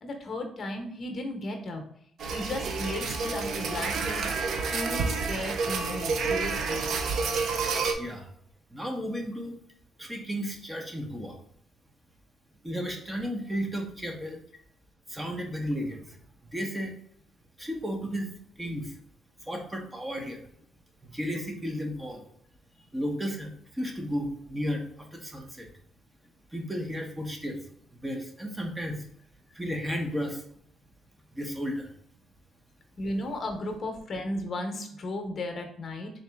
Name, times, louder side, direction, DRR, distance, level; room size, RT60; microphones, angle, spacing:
voice 1, 0.0-1.8 2.3-4.3 4.7-6.9 33.0-36.1, left 1 dB, 50° left, 4 dB, 0.9 m, -35 dB
sound 1, 2.2-7.9, right 4 dB, 70° right, 0.5 m, -29 dB
voice 2, 8.0-8.3 8.7-9.6 10.0-11.4 12.6-14.4 15.1-16.2 16.5-16.9 17.6-18.3 18.6-19.0 19.4-20.5 21.0-22.3 22.9-25.7 26.5-27.6 27.9-29.1 29.5-30.4 31.3-31.9, equal, 15° right, 2 dB, 0.8 m, -33 dB
3.9 x 2.7 x 3.4 m, 0.65 s
cardioid pair, 90°, 0 cm